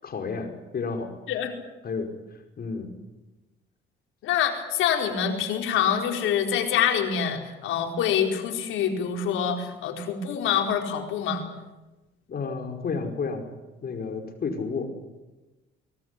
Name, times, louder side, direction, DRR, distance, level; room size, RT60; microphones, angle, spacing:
voice 1, 0.0-1.1 1.8-2.9 12.3-13.4 13.8-14.9, left 4 dB, 50° left, 5 dB, 5.1 m, -31 dB
voice 2, 4.2-11.4, left 8 dB, 90° left, 3 dB, 4.7 m, -25 dB
24.0 x 19.0 x 9.9 m, 1.1 s
cardioid pair, 90°, 20 cm